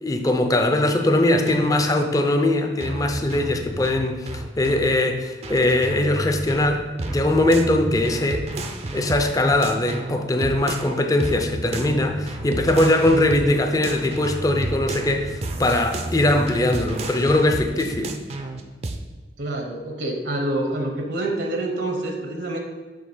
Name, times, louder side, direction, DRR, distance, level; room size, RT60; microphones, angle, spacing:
voice 1, 0.0-8.5 8.9-18.2, left 1 dB, 20° left, 5 dB, 0.5 m, -21 dB
sound 1, 1.5-1.8 2.8-4.9 5.4-10.9 11.2-13.6 13.8-19.0, right 2 dB, 35° right, 0.5 m, -31 dB
voice 2, 19.4-22.6, right 1 dB, 75° right, 2 dB, 0.9 m, -27 dB
6.6 x 2.9 x 5.4 m, 1.4 s
head